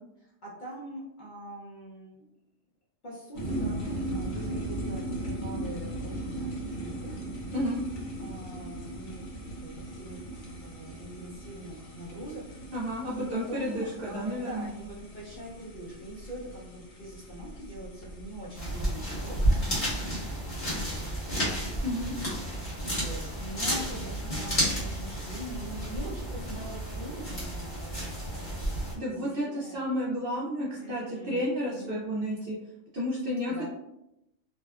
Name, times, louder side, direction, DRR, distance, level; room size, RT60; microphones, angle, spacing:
voice 1, 0.2-2.3 3.0-6.3 6.7-7.2 8.2-9.3 9.6-12.7 13.1-20.2 20.6-21.9 22.9-28.7 29.0-29.9 30.7-32.0 33.5-33.7, right 1 dB, 50° left, -6 dB, 0.6 m, -43 dB
sound 1, 3.3-20.1, right 1 dB, 80° left, 1.1 m, -38 dB
voice 2, 12.7-14.7 21.8-22.1 28.9-32.5 32.9-33.7, equal, 65° right, -6 dB, 0.6 m, -31 dB
sound 2, 18.5-28.9, equal, 30° left, 1.0 m, -31 dB
2.7 x 2.2 x 2.3 m, 0.85 s
omnidirectional pair, 1.4 m